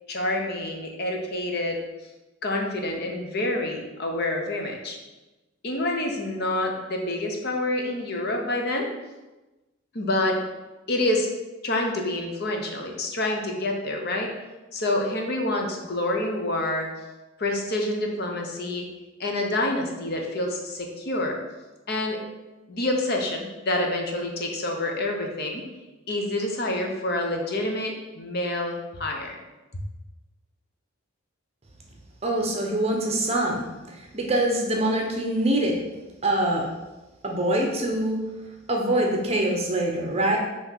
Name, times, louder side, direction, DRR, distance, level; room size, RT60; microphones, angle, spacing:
voice 1, 0.1-1.8 2.4-5.0 5.6-8.9 9.9-10.4 10.9-11.3 11.6-14.3 14.7-16.9 17.4-18.8 19.2-21.4 21.9-22.2 22.7-25.6 26.1-29.4, left 1 dB, 50° left, 1 dB, 0.9 m, -27 dB
voice 2, 32.2-35.8 36.2-36.7 37.2-38.2 38.7-40.4, right 1 dB, 30° right, 0 dB, 0.9 m, -24 dB
5.7 x 3.2 x 5.7 m, 1.1 s
head